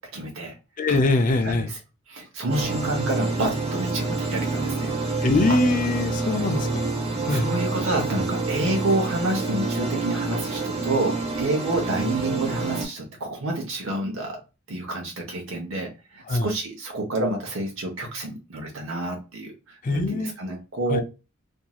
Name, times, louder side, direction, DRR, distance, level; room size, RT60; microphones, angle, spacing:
voice 1, 0.1-0.5 0.9-1.0 1.4-1.8 2.1-4.9 5.5-5.6 6.2-6.5 7.3-14.4 14.7-15.9 16.1-21.0, right 2 dB, 70° right, 0.9 m, -28 dB
voice 2, 0.8-1.7 5.2-7.0 7.2-7.5 16.3-16.5 19.8-20.4 20.9-21.0, left 2 dB, 40° left, 0.5 m, -23 dB
sound 1, 2.5-12.8, right 3 dB, 30° right, 0.7 m, -27 dB
3.0 x 2.6 x 2.3 m
head